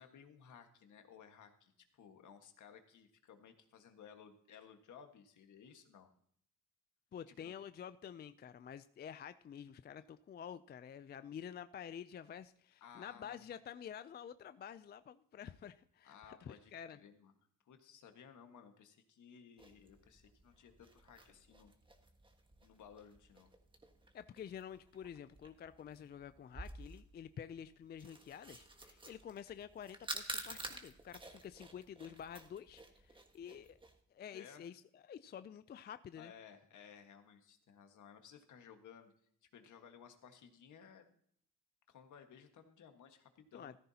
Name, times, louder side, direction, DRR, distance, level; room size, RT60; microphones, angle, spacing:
voice 1, 0.0-6.1 7.3-7.4 12.8-13.6 16.0-17.3 17.7-21.7 22.6-23.5 34.3-34.7 36.2-39.1 39.5-41.1 41.9-43.8, left 7 dB, 70° left, 6 dB, 1.6 m, -58 dB
voice 2, 7.1-17.0 24.1-33.8 34.1-36.3 43.5-43.7, left 8 dB, 35° left, 13 dB, 0.4 m, -49 dB
sound 1, 19.6-34.0, right 2 dB, 15° right, 1.5 m, -51 dB
14.5 x 13.5 x 2.8 m, 0.64 s
cardioid pair, 110°, 31 cm